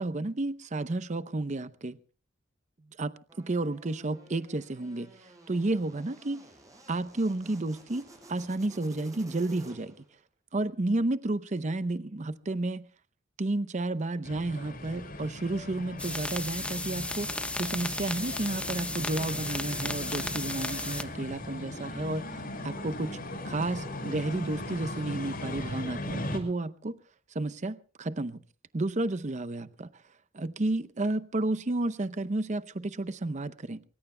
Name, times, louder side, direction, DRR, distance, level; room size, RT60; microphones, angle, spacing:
voice 1, 0.0-2.0 3.0-6.4 6.9-10.0 10.5-12.9 13.4-23.2 23.4-27.0 27.3-28.4 28.7-29.9 30.3-33.8, right 2 dB, 40° right, 0.7 m, -32 dB
sound 1, 3.3-10.1, right 1 dB, 20° right, 7.3 m, -54 dB
sound 2, 14.2-26.4, left 1 dB, 50° left, 6.1 m, -39 dB
sound 3, 16.0-21.0, left 2 dB, 5° left, 1.1 m, -34 dB
24.5 x 23.5 x 2.2 m
head